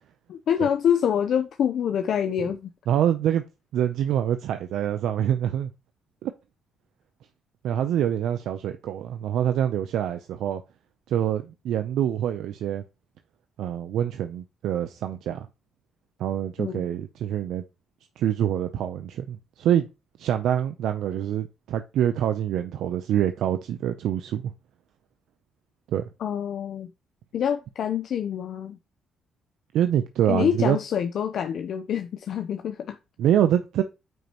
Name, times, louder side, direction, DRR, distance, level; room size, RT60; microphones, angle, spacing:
voice 1, 0.3-2.7 16.6-16.8 26.2-26.9 27.3-28.8 30.3-33.0, left 8 dB, 70° left, 0.7 m, -26 dB
voice 2, 2.9-3.4 3.7-5.7 6.2-6.3 7.6-10.6 11.1-12.8 13.6-15.5 16.2-17.6 18.2-19.9 20.2-24.5 25.9-26.1 29.7-30.8 33.2-33.8, right 10 dB, 75° right, 0.6 m, -25 dB
9.1 x 5.3 x 3.0 m
supercardioid pair, 65°, 0 cm